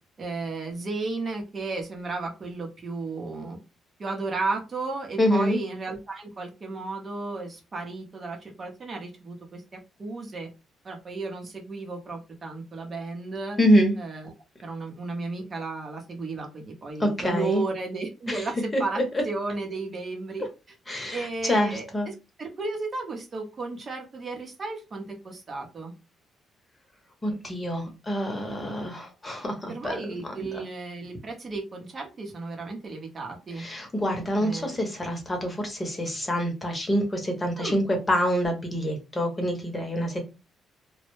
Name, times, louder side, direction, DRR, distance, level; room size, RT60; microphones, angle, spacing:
voice 1, 0.2-3.6 4.0-10.5 10.8-13.6 14.0-14.3 14.6-20.5 21.1-21.8 22.4-25.9 29.7-33.6 34.3-34.8 37.6-37.8, right 3 dB, 40° right, 2 dB, 0.7 m, -34 dB
voice 2, 5.2-5.6 13.6-14.0 17.0-17.6 18.3-19.2 20.4-20.5 20.9-22.1 27.2-30.6 33.5-40.2, equal, 20° left, 3 dB, 0.8 m, -26 dB
2.1 x 2.0 x 3.0 m, 0.28 s
cardioid pair, 90°, 0 cm